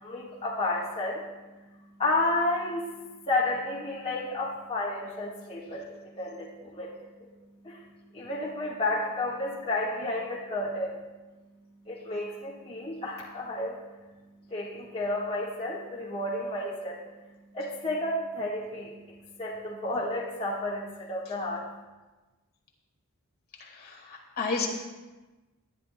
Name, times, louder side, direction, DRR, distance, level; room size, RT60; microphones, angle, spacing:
voice 1, 0.0-1.2 2.0-2.9 3.3-7.3 7.6-7.8 8.1-11.0 11.9-13.8 14.5-17.0 17.5-21.7, left 2 dB, 25° left, -6 dB, 1.5 m, -31 dB
voice 2, 23.6-24.7, left 4 dB, 45° left, 0 dB, 1.8 m, -32 dB
19.0 x 11.0 x 2.2 m, 1.2 s
head